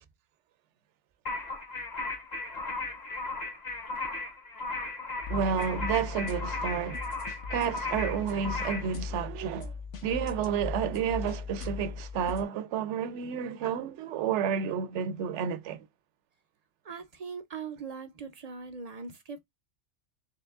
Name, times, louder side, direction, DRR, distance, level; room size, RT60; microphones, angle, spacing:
sound 1, 1.3-8.9, left 3 dB, 40° left, 0.9 m, -36 dB
sound 2, 5.2-12.4, left 5 dB, 75° left, 1.2 m, -38 dB
voice 1, 5.3-7.1 7.5-9.7 10.0-15.9, right 7 dB, 75° right, 0.9 m, -31 dB
voice 2, 16.8-19.4, right 5 dB, 50° right, 0.5 m, -40 dB
3.6 x 3.0 x 3.4 m
omnidirectional pair, 1.2 m